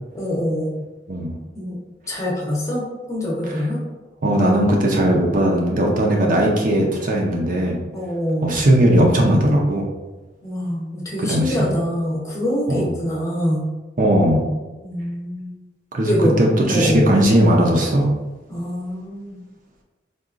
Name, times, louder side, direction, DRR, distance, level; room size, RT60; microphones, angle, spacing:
voice 1, 0.1-0.7 1.6-1.8 2.1-3.8 7.9-8.6 10.4-13.7 14.8-15.5 16.0-16.3 16.7-17.0 18.5-19.4, equal, 15° left, -4 dB, 0.7 m, -24 dB
voice 2, 4.2-7.8 8.4-9.9 11.2-11.7 12.7-12.9 14.0-14.5 15.9-18.2, right 1 dB, 45° right, 0 dB, 0.5 m, -18 dB
3.8 x 2.3 x 2.4 m, 1.2 s
head